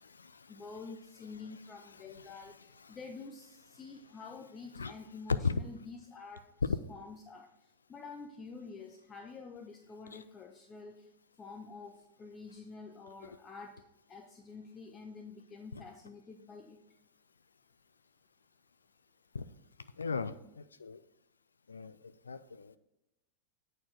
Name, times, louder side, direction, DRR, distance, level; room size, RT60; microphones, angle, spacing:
voice 1, 0.5-11.1 11.4-13.8 14.1-16.8, left 4 dB, 20° left, 4 dB, 0.6 m, -48 dB
voice 2, 20.0-20.3 20.8-21.0 21.7-21.9 22.3-22.8, left 5 dB, 75° left, 13 dB, 0.4 m, -34 dB
8.5 x 4.4 x 4.7 m, 0.89 s
figure-of-eight pair, 90°, 0 cm